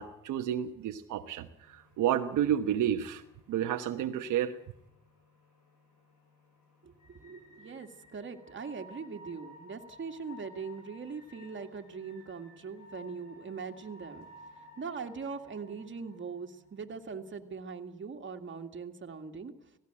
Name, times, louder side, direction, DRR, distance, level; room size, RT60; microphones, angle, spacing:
voice 1, 0.0-1.5 2.0-3.2 3.5-4.5, right 10 dB, 85° right, 5 dB, 1.2 m, -30 dB
sound 1, 1.6-17.5, left 1 dB, 85° left, 6.2 m, -56 dB
voice 2, 6.8-14.3 14.6-19.5, right 5 dB, 40° right, 4 dB, 2.1 m, -41 dB
17.5 x 17.0 x 8.9 m, 0.83 s
cardioid pair, 90°, 30 cm